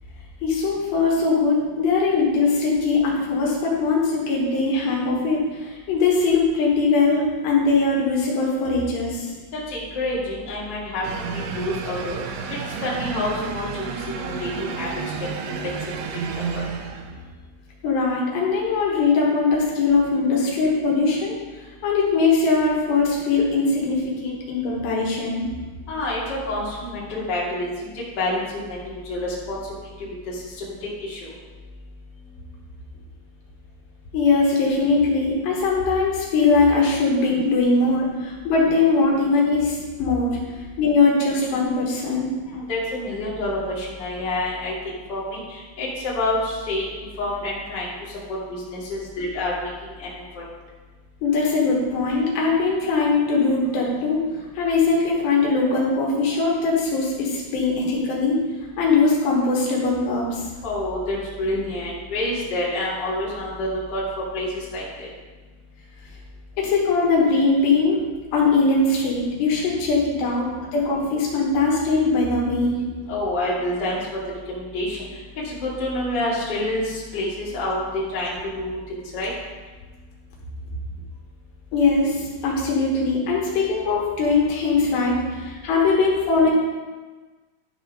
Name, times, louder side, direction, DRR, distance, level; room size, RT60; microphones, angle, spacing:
voice 1, 0.4-5.4 5.9-9.3 17.8-21.4 21.8-25.4 34.1-40.4 40.8-42.3 51.2-54.2 54.6-58.4 58.8-60.4 66.6-68.0 68.3-70.5 70.7-72.8 81.7-86.5, left 4 dB, 75° left, -2 dB, 3.3 m, -21 dB
voice 2, 9.7-11.1 11.3-12.2 12.8-13.8 14.2-14.9 15.6-15.7 16.5-16.6 25.9-27.7 28.2-28.4 28.7-29.6 31.1-31.3 42.7-44.7 45.1-45.4 45.8-46.9 47.2-47.9 48.5-49.7 50.0-50.1 60.6-64.0 64.3-65.1 73.1-74.0 74.5-75.0 75.4-76.8 77.1-78.3 78.6-78.8 79.1-79.3, left 1 dB, 30° left, -7 dB, 2.2 m, -27 dB
sound 1, 11.0-17.3, right 6 dB, 85° right, 2.5 m, -31 dB
12.0 x 4.2 x 5.4 m, 1.3 s
omnidirectional pair, 5.2 m